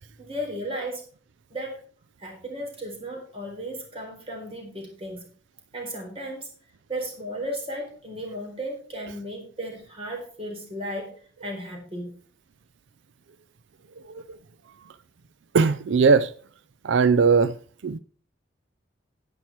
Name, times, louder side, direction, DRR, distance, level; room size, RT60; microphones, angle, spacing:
voice 1, 0.2-1.0 1.5-1.8 2.2-5.2 5.7-6.5 6.9-11.1 11.4-12.1, equal, 30° right, 4.1 m, -35 dB
voice 2, 15.5-16.3 16.8-17.6 17.8-18.0, right 5 dB, 80° right, 0.5 m, -19 dB
10.5 x 9.0 x 4.4 m
head